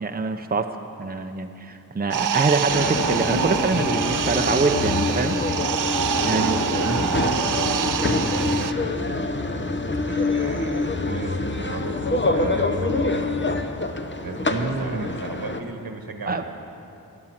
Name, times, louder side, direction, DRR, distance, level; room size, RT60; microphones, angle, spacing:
voice 1, 0.0-0.7 1.0-5.4 6.2-7.1 14.5-15.1 16.3-16.4, right 4 dB, 25° right, 6 dB, 0.7 m, -25 dB
sound 1, 2.1-8.7, right 9 dB, 60° right, 0.5 m, -26 dB
sound 2, 2.7-15.6, left 3 dB, 30° left, 1.0 m, -25 dB
voice 2, 6.2-7.1 7.4-8.1 8.4-9.3 10.0-13.7 14.2-16.4, right 3 dB, 75° right, 4 dB, 1.5 m, -35 dB
12.5 x 11.0 x 7.4 m, 2.8 s
cardioid pair, 40°, 36 cm